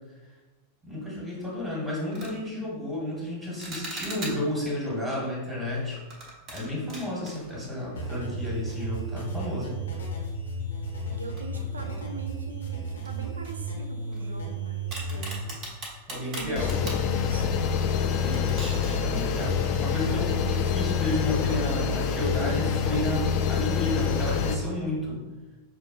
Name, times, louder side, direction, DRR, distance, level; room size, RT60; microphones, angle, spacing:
voice 1, 0.9-6.0 6.5-9.7 16.1-16.7 18.1-18.7 19.0-25.2, left 1 dB, 20° right, -5 dB, 1.3 m, -32 dB
sound 1, 1.4-1.6 2.0-2.4 3.6-4.6 5.9-8.3 8.6-8.7 9.5-9.6 11.4-12.0 12.4-12.5 13.0-14.5 14.9-17.1 17.6-17.8 18.1-20.1, right 2 dB, 35° right, 1.1 m, -41 dB
sound 2, 7.9-15.5, right 3 dB, 70° left, 0.7 m, -34 dB
voice 2, 11.1-15.5 15.7-15.9 16.2-17.6, right 2 dB, 75° right, 5 dB, 0.4 m, -41 dB
sound 3, 16.6-24.6, left 7 dB, 40° left, 0.4 m, -26 dB
5.6 x 2.4 x 2.6 m, 1.2 s
figure-of-eight pair, 90°, 0 cm